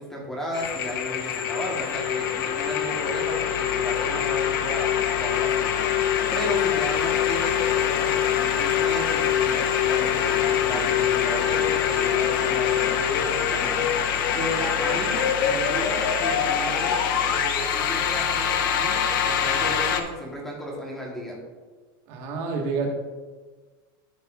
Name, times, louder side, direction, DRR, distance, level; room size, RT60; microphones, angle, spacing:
voice 1, 0.0-5.7 6.3-13.8 14.3-21.4, right 1 dB, 5° left, -2 dB, 1.2 m, -34 dB
sound 1, 0.5-20.0, left 9 dB, 65° left, 0.7 m, -24 dB
voice 2, 22.1-22.9, right 4 dB, 40° right, 1 dB, 1.5 m, -28 dB
11.5 x 6.6 x 2.4 m, 1.3 s
supercardioid pair, 175°, 12 cm